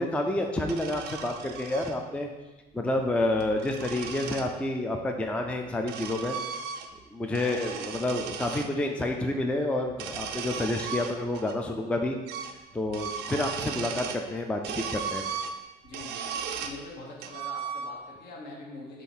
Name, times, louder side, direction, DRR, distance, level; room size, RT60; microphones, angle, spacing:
voice 1, 0.0-2.3 2.7-6.4 7.1-12.2 12.7-15.2, left 1 dB, 5° left, 3 dB, 0.3 m, -29 dB
sound 1, 0.6-2.0 3.2-4.5 5.4-7.0 7.3-8.7 9.9-11.6 11.8-11.9 12.3-12.6 12.9-14.3 14.6-16.8 17.2-18.2, right 7 dB, 85° right, 0.4 m, -36 dB
voice 2, 15.8-19.0, left 2 dB, 70° left, -2 dB, 1.1 m, -44 dB
3.8 x 3.1 x 4.3 m, 1.1 s
cardioid pair, 110°, 17 cm